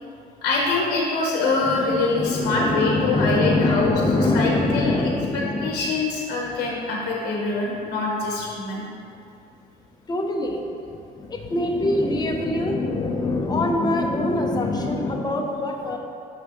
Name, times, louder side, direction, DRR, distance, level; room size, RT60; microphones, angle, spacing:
voice 1, 0.4-3.9 4.3-8.9, left 3 dB, 75° left, -2 dB, 0.9 m, -24 dB
voice 2, 1.6-5.9 6.4-6.8 10.1-16.0, left 2 dB, 25° left, 2 dB, 0.7 m, -24 dB
6.3 x 5.9 x 3.0 m, 2.5 s
cardioid pair, 110°, 17 cm